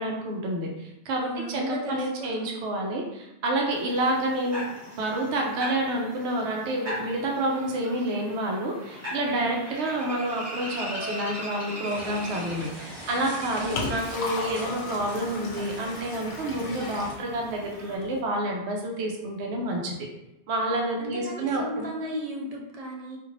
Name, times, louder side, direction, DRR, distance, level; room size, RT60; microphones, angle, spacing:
voice 1, 0.0-4.6 5.0-20.0 20.5-21.9, right 1 dB, 80° right, 0 dB, 0.9 m, -29 dB
voice 2, 1.2-2.6 9.4-9.6 13.7-14.0 21.0-23.2, equal, 50° right, -2 dB, 0.5 m, -35 dB
sound 1, 3.7-18.0, equal, 15° right, 0.7 m, -40 dB
sound 2, 11.8-17.2, equal, 30° left, 1.0 m, -42 dB
Liquid, 13.2-18.2, left 3 dB, 70° left, 0.8 m, -37 dB
2.5 x 2.5 x 3.1 m, 0.93 s
omnidirectional pair, 1.1 m